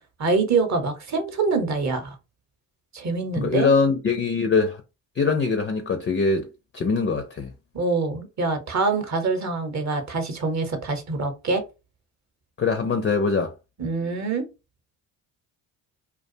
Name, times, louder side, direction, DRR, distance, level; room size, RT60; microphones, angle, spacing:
voice 1, 0.2-2.1 2.9-3.7 7.7-11.6 13.8-14.4, right 4 dB, 40° right, 0.9 m, -25 dB
voice 2, 3.4-4.8 5.2-6.5 6.7-7.5 12.6-13.5, left 4 dB, 30° left, 0.4 m, -22 dB
2.4 x 2.2 x 2.6 m
supercardioid pair, 65°, 43 cm